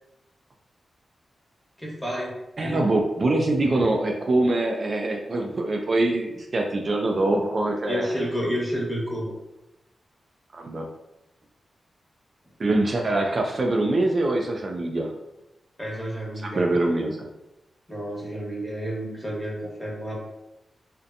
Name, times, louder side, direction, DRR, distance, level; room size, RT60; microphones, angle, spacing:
voice 1, 1.8-2.8 7.9-9.3 15.8-16.6 17.9-20.2, equal, 10° left, -5 dB, 1.1 m, -30 dB
voice 2, 2.6-8.1 10.5-10.9 12.6-15.1 16.4-17.2, right 2 dB, 50° right, 1 dB, 0.3 m, -24 dB
2.6 x 2.1 x 2.5 m, 0.95 s
cardioid pair, 55°, 0 cm